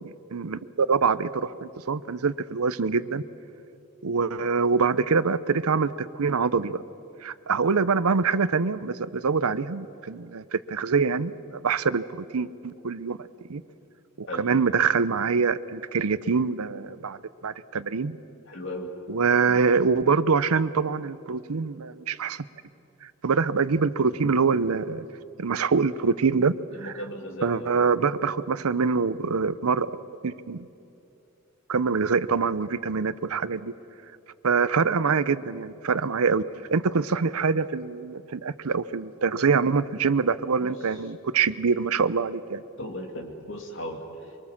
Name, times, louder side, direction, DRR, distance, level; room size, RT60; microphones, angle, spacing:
voice 1, 0.0-3.2 4.0-6.8 7.2-13.2 13.5-13.6 14.2-18.2 19.1-22.4 23.0-25.1 25.4-26.6 26.8-26.9 27.4-29.9 30.2-30.7 31.7-33.7 34.4-36.4 36.7-42.6, right 5 dB, 85° right, 16 dB, 0.7 m, -25 dB
voice 2, 18.5-18.9 26.7-27.7 40.6-40.7 42.8-44.4, equal, 60° left, 3 dB, 2.6 m, -36 dB
24.5 x 23.5 x 7.3 m, 2.7 s
head